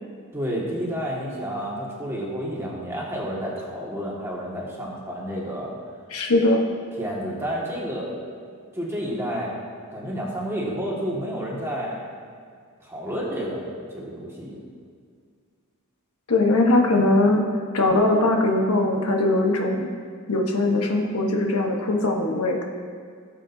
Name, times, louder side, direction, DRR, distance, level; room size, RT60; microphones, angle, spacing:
voice 1, 0.3-5.8 7.0-8.2 8.7-9.5 9.9-12.0 12.8-14.6, equal, 10° right, -5 dB, 1.8 m, -30 dB
voice 2, 6.1-6.6 16.3-17.4 17.7-19.9 20.3-22.7, left 2 dB, 85° left, 2 dB, 1.1 m, -20 dB
17.0 x 7.6 x 2.7 m, 2.1 s
head